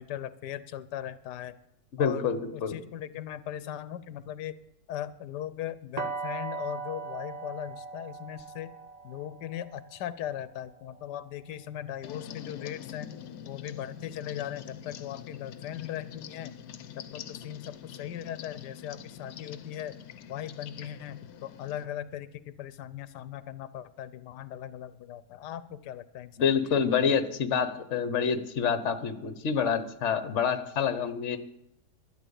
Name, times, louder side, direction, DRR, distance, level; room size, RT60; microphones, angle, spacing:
voice 1, 0.0-1.6 2.0-2.3 2.5-4.6 4.9-8.7 9.0-13.1 13.4-16.5 17.1-20.0 20.3-26.6, left 11 dB, 90° left, 15 dB, 1.3 m, -39 dB
voice 2, 1.9-2.8 26.4-31.4, left 6 dB, 50° left, 11 dB, 1.3 m, -27 dB
sound 1, 6.0-11.8, right 4 dB, 30° right, 1.1 m, -40 dB
sound 2, 12.0-21.8, left 9 dB, 70° left, 1.2 m, -45 dB
12.5 x 10.5 x 7.0 m, 0.81 s
omnidirectional pair, 1.7 m